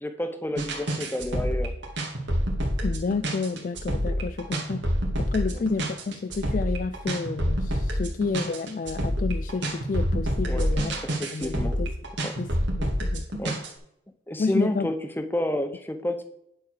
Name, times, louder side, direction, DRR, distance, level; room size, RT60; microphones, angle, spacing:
voice 1, 0.0-1.7 4.1-4.2 5.5-5.6 10.5-10.7 11.0-11.8 12.2-12.3 13.4-13.6 14.3-16.3, left 1 dB, 10° left, 8 dB, 0.8 m, -30 dB
sound 1, 0.6-13.7, equal, 80° right, 2.6 m, -27 dB
voice 2, 2.8-10.9 11.3-11.9 12.4-12.5 12.8-13.4 14.4-14.9, left 4 dB, 45° left, 10 dB, 0.3 m, -30 dB
10.5 x 4.3 x 6.6 m, 0.75 s
head